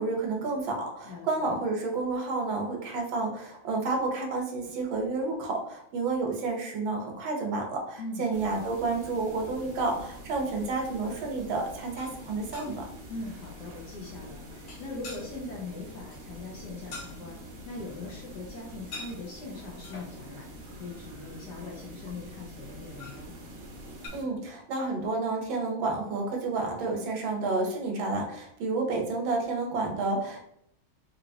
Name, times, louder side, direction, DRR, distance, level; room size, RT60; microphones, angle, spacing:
voice 1, 0.0-12.9 24.1-30.4, right 3 dB, 75° right, 1 dB, 1.5 m, -30 dB
voice 2, 1.0-1.6 8.0-8.6 13.1-17.4 17.6-23.3, left 3 dB, 70° left, -1 dB, 1.1 m, -41 dB
sound 1, 8.3-24.2, equal, 55° right, 0.9 m, -45 dB
sound 2, 12.0-20.3 22.7-24.1, left 3 dB, 85° left, 1.7 m, -48 dB
4.0 x 2.8 x 2.6 m, 0.71 s
omnidirectional pair, 2.3 m